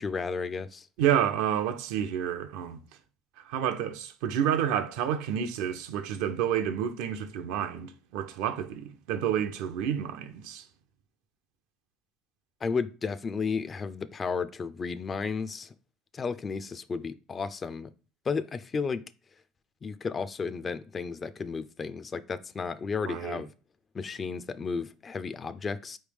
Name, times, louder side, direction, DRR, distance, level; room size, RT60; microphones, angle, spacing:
voice 1, 0.0-0.9 12.6-15.7 16.1-17.9 18.3-19.0 19.8-23.5 23.9-26.0, left 5 dB, 30° left, 0.3 m, -33 dB
voice 2, 1.0-2.8 3.5-10.6 23.0-23.4, right 9 dB, 80° right, 0.5 m, -29 dB
4.7 x 3.2 x 3.4 m
supercardioid pair, 110°, 0 cm